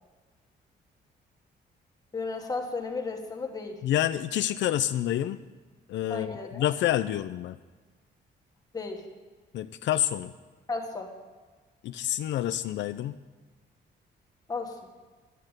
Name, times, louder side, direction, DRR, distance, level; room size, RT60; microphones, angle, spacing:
voice 1, 2.1-3.8 6.1-6.6 8.7-9.0 10.7-11.1 14.5-14.8, left 3 dB, 20° left, 1 dB, 1.6 m, -34 dB
voice 2, 3.8-5.4 5.9-7.6 9.5-10.3 11.8-13.2, left 12 dB, 80° left, 11 dB, 0.5 m, -28 dB
10.5 x 8.2 x 8.8 m, 1.4 s
cardioid pair, 155°, 18 cm